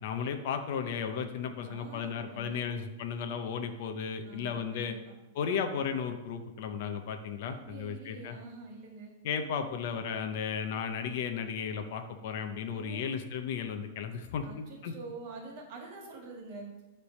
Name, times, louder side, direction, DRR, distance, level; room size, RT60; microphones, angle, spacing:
voice 1, 0.0-5.0 5.3-8.4 9.2-14.9, left 6 dB, 45° left, 6 dB, 0.7 m, -35 dB
voice 2, 1.7-2.8 4.2-5.1 7.4-9.1 12.7-13.2 14.4-16.7, right 3 dB, 35° right, 0 dB, 1.7 m, -46 dB
9.9 x 3.4 x 6.5 m, 1.1 s
supercardioid pair, 175°, 0 cm